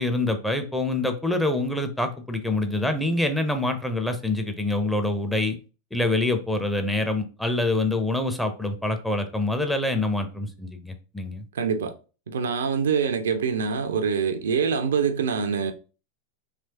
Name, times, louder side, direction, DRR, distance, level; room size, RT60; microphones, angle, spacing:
voice 1, 0.0-5.6 5.9-11.4, left 2 dB, 5° left, 0.5 m, -26 dB
voice 2, 11.5-11.9 12.3-15.7, right 6 dB, 65° right, 0.4 m, -25 dB
3.2 x 2.9 x 2.7 m
figure-of-eight pair, 90°, 0 cm